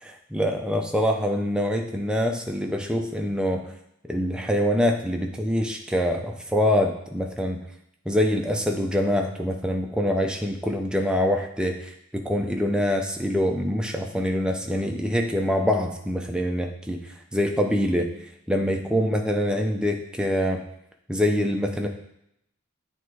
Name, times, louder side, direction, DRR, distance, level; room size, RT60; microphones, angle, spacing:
voice 1, 0.0-3.6 4.1-7.6 8.1-17.0 17.3-18.1 18.5-20.6 21.1-21.9, equal, 5° right, 2 dB, 0.6 m, -25 dB
8.3 x 3.5 x 4.7 m, 0.76 s
head